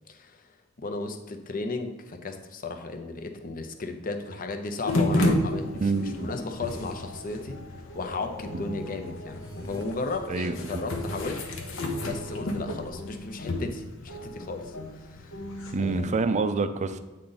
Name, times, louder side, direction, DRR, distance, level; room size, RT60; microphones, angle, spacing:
voice 1, 0.1-11.4 11.7-15.4 15.8-16.1, left 3 dB, 45° left, 6 dB, 0.6 m, -35 dB
sound 1, 4.9-16.2, left 1 dB, 80° left, 0.9 m, -32 dB
voice 2, 5.8-6.3 10.3-10.8 15.7-17.0, right 4 dB, 35° right, 11 dB, 0.4 m, -27 dB
sound 2, 9.3-9.8, equal, 15° left, 1.3 m, -44 dB
8.4 x 3.8 x 4.0 m, 1.1 s
head